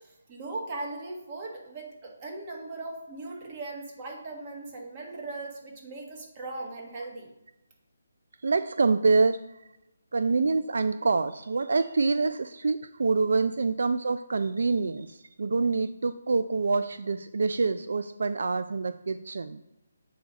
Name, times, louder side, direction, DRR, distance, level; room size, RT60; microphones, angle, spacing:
voice 1, 0.0-7.3, right 2 dB, 25° right, 0 dB, 1.5 m, -39 dB
voice 2, 8.4-9.7 10.1-19.6, right 4 dB, 70° right, 11 dB, 0.3 m, -26 dB
7.9 x 4.8 x 4.0 m, 0.94 s
hypercardioid pair, 165°, 0 cm